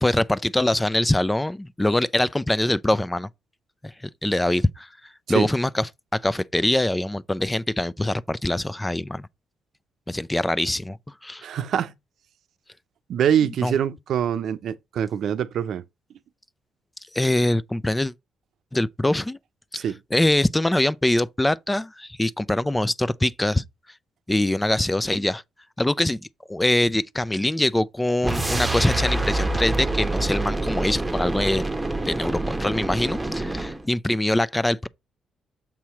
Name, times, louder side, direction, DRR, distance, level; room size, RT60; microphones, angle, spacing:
voice 1, 0.0-3.3 3.8-3.9 4.2-4.9 5.3-9.3 10.1-11.0 11.2-11.4 13.6-13.7 17.1-18.1 18.7-19.4 19.7-19.8 20.1-23.6 24.3-25.4 25.8-26.2 26.5-31.6 32.1-34.9, left 1 dB, 10° left, 0.4 m, -23 dB
voice 2, 11.4-11.9 13.1-15.8 19.8-20.0, right 9 dB, 70° right, 0.7 m, -24 dB
sound 1, 28.2-33.8, right 2 dB, 10° right, 1.0 m, -26 dB
7.3 x 3.0 x 5.7 m
cardioid pair, 90°, 0 cm